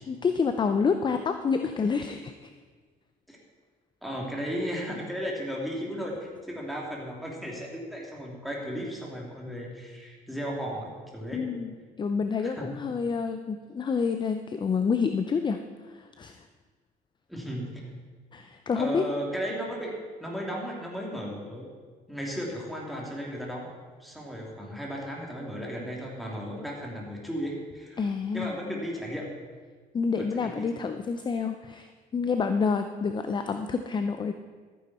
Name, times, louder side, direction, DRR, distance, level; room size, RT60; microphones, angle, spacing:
voice 1, 0.1-2.5 11.3-15.6 15.9-16.5 18.3-19.0 28.0-28.5 29.9-34.3, left 5 dB, 25° left, 8 dB, 0.5 m, -28 dB
voice 2, 4.0-11.5 12.4-12.7 17.3-17.8 18.8-19.9 20.2-21.7 22.1-23.7 24.0-28.1 28.3-29.3 30.1-30.7, equal, ahead, -2 dB, 2.9 m, -35 dB
13.5 x 9.4 x 4.3 m, 1.5 s
cardioid pair, 110°, 17 cm